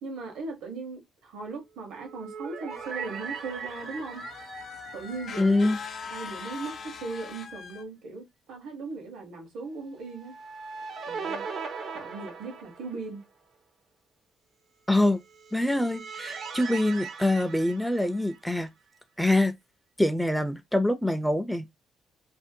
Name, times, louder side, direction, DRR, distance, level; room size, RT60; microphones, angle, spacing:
voice 1, 0.0-4.2 4.9-5.7 6.1-10.3 11.1-11.4 11.9-13.2, right 3 dB, 85° right, 1.0 m, -38 dB
sound 1, 1.9-6.2 6.5-6.6 10.1-13.2 15.3-18.7, right 5 dB, 60° right, 0.5 m, -40 dB
sound 2, 2.7-7.8, left 5 dB, 55° left, 0.5 m, -42 dB
voice 2, 5.4-5.8 14.9-15.2 15.5-18.7 19.2-19.5 20.0-21.7, left 1 dB, ahead, 0.4 m, -25 dB
2.6 x 2.0 x 2.6 m
cardioid pair, 90°, 0 cm